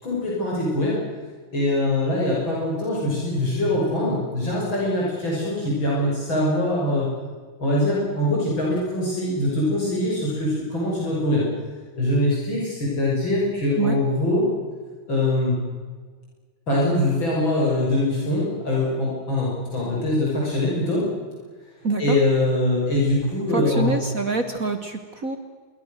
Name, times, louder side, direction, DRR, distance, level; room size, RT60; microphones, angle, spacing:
voice 1, 0.0-1.0 1.5-7.1 7.6-11.5 12.0-14.5 15.1-15.6 16.7-21.1 22.0-23.9, left 1 dB, 65° left, -5 dB, 7.2 m, -23 dB
voice 2, 21.8-22.2 23.5-25.4, right 3 dB, 45° right, 7 dB, 1.7 m, -26 dB
26.5 x 23.5 x 6.6 m, 1.5 s
omnidirectional pair, 2.3 m